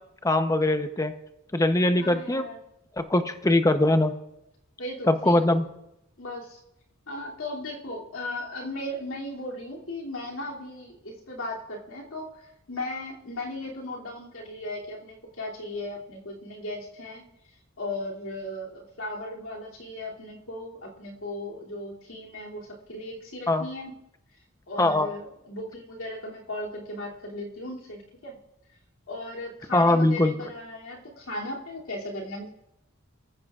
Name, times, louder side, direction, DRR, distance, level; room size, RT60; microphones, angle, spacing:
voice 1, 0.2-1.1 1.5-2.4 3.0-4.1 5.1-5.7 23.5-23.7 24.8-25.1 29.7-30.3, left 1 dB, 15° left, 8 dB, 0.7 m, -22 dB
voice 2, 2.0-2.6 4.8-5.5 6.2-6.6 7.1-17.3 17.8-23.9 24.7-28.4 29.1-32.5, left 1 dB, 85° left, -1 dB, 2.8 m, -37 dB
24.0 x 15.0 x 2.4 m, 0.84 s
head